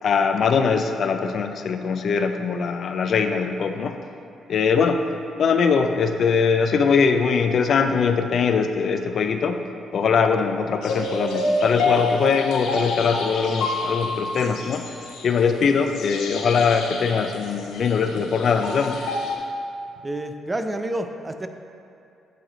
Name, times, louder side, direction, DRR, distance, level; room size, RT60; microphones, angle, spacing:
voice 1, 0.0-4.0 4.5-5.0 5.4-9.6 9.9-14.9 15.2-19.0, left 5 dB, 60° left, 7 dB, 0.3 m, -21 dB
sound 1, 10.8-19.3, left 2 dB, 85° left, 0.7 m, -28 dB
voice 2, 20.0-21.5, right 1 dB, 20° right, 7 dB, 0.4 m, -29 dB
8.6 x 3.2 x 3.8 m, 2.5 s
cardioid pair, 90°, 0 cm